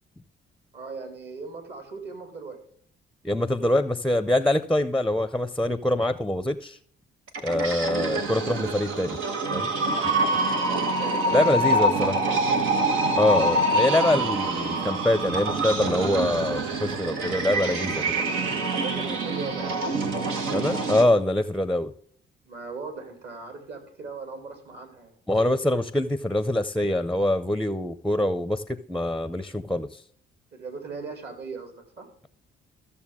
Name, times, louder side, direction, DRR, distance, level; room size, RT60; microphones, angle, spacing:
voice 1, 0.7-2.6 10.2-12.4 18.8-19.9 22.4-25.1 30.5-32.1, right 4 dB, 55° right, 4 dB, 3.2 m, -38 dB
voice 2, 3.2-6.8 7.4-9.2 9.5-9.7 11.3-12.2 13.1-18.2 20.5-21.9 25.3-28.6 28.9-30.0, left 1 dB, 5° left, 12 dB, 0.6 m, -24 dB
sound 1, 7.3-21.0, right 2 dB, 90° right, 1.5 m, -26 dB
14.5 x 6.9 x 3.6 m, 0.62 s
cardioid pair, 90°, 20 cm